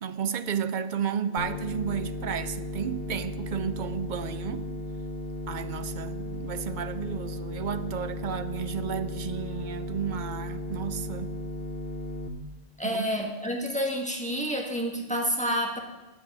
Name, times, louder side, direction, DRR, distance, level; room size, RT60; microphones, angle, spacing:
voice 1, 0.0-4.7 5.5-11.4 12.8-13.1, right 7 dB, 55° right, 0.6 m, -32 dB
sound 1, 1.4-12.3, left 2 dB, 65° left, 1.0 m, -35 dB
voice 2, 12.8-15.8, equal, 5° left, 1.5 m, -29 dB
9.3 x 7.8 x 7.4 m
omnidirectional pair, 1.1 m